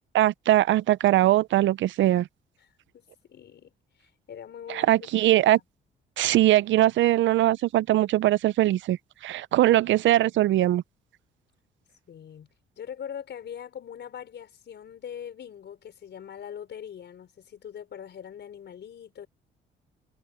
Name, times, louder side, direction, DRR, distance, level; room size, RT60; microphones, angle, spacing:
voice 1, 0.1-2.3 4.7-5.6 6.2-9.0 9.2-10.8, right 14 dB, 70° right, 0.5 m, -21 dB
voice 2, 2.9-3.7 4.0-4.9 5.2-5.5 12.1-12.5 12.8-19.3, left 8 dB, 60° left, 5.1 m, -42 dB
cardioid pair, 90°, 20 cm